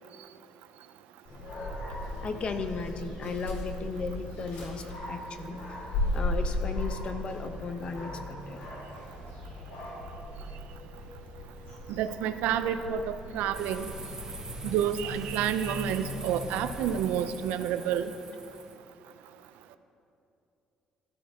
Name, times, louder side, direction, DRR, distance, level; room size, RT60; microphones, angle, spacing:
Dog, 1.3-17.0, left 1 dB, 85° left, 3.6 m, -37 dB
voice 1, 2.2-5.6 6.1-8.6, left 4 dB, 45° left, 7 dB, 1.1 m, -35 dB
voice 2, 11.9-13.9 14.6-18.1, right 9 dB, 90° right, 10 dB, 0.6 m, -29 dB
sound 1, 13.5-18.7, right 3 dB, 25° right, 1.7 m, -44 dB
16.0 x 12.5 x 3.7 m, 2.7 s
cardioid pair, 105°, 3 cm